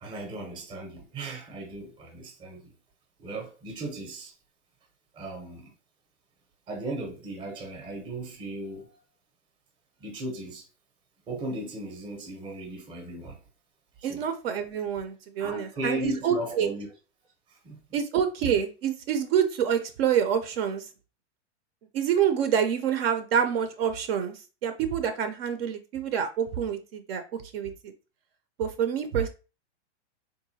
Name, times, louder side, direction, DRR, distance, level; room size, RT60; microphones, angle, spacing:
voice 1, 0.0-2.7 3.2-4.3 5.1-5.7 6.7-9.0 10.0-10.7 11.3-13.4 14.0-14.3 15.4-16.9 17.5-17.8, right 1 dB, 15° right, 0.6 m, -36 dB
voice 2, 14.0-16.7 17.9-20.9 21.9-27.7 28.6-29.3, right 8 dB, 55° right, 0.5 m, -27 dB
3.7 x 2.6 x 2.7 m
hypercardioid pair, 145°, 35 cm